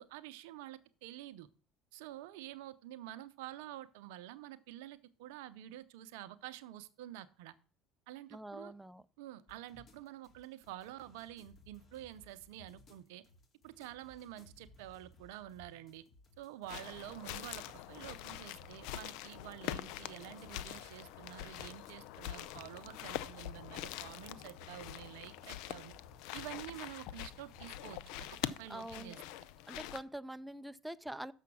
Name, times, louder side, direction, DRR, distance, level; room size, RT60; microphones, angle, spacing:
voice 1, 0.0-1.5 1.9-7.5 8.1-8.7 9.2-13.2 13.6-16.0 16.4-25.9 26.3-29.2, right 13 dB, 80° right, 0.6 m, -49 dB
voice 2, 8.3-9.0 28.7-29.2 29.7-31.3, right 1 dB, 5° right, 0.4 m, -45 dB
sound 1, 9.5-28.6, left 2 dB, 45° left, 2.2 m, -62 dB
sound 2, 16.7-30.0, left 13 dB, 70° left, 0.4 m, -44 dB
7.0 x 5.8 x 6.1 m
hypercardioid pair, 75°, 0 cm